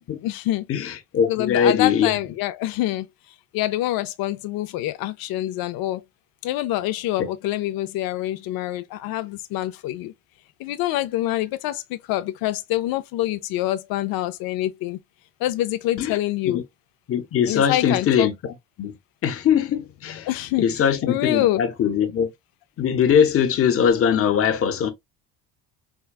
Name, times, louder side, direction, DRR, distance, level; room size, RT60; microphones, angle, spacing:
voice 1, 0.2-0.7 1.3-3.1 3.5-6.0 6.4-10.1 10.6-15.0 15.4-16.6 17.5-18.3 20.1-21.6, left 14 dB, 70° left, 0.5 m, -26 dB
voice 2, 0.7-2.2 16.0-16.2 16.4-16.6 17.1-19.0 19.2-20.3 20.6-22.3 22.8-24.9, left 8 dB, 40° left, 0.7 m, -21 dB
4.6 x 2.2 x 2.3 m
cardioid pair, 145°, 37 cm